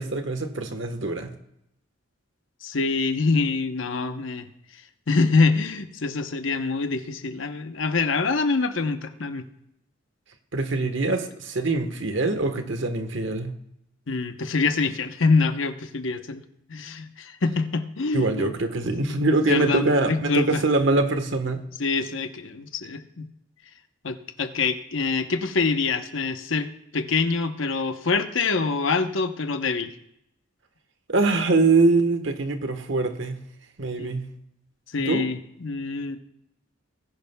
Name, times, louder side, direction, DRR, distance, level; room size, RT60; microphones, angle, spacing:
voice 1, 0.0-1.3 10.5-13.6 18.1-21.6 31.1-33.4 33.8-34.3 35.0-35.2, right 3 dB, 70° right, 7 dB, 1.3 m, -23 dB
voice 2, 2.6-4.5 5.1-9.5 14.1-16.4 16.7-18.5 19.5-20.6 21.8-23.3 24.0-29.9 34.0-34.1 34.9-36.2, left 4 dB, 75° left, 8 dB, 0.9 m, -25 dB
20.0 x 11.0 x 2.3 m, 0.77 s
head